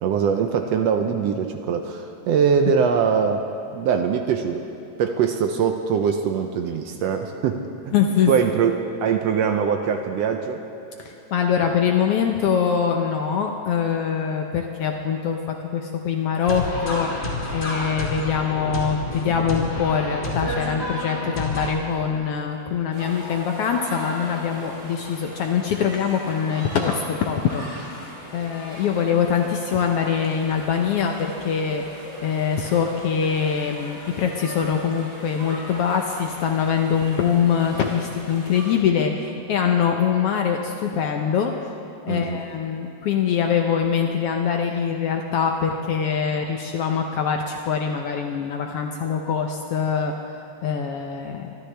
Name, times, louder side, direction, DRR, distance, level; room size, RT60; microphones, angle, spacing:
voice 1, 0.0-3.4 3.7-4.7 5.0-7.9 8.3-10.6 42.1-42.4, right 6 dB, 75° right, 5 dB, 1.6 m, -22 dB
voice 2, 7.9-8.3 11.0-17.1 17.5-27.9 28.3-31.8 32.2-41.5 42.0-50.1 50.6-51.5, left 7 dB, 70° left, 3 dB, 1.5 m, -23 dB
sound 1, 16.4-21.7, left 2 dB, 20° left, 2.5 m, -29 dB
sound 2, 22.9-38.7, equal, 25° right, 3.1 m, -39 dB
24.5 x 13.0 x 3.4 m, 2.8 s
omnidirectional pair, 3.3 m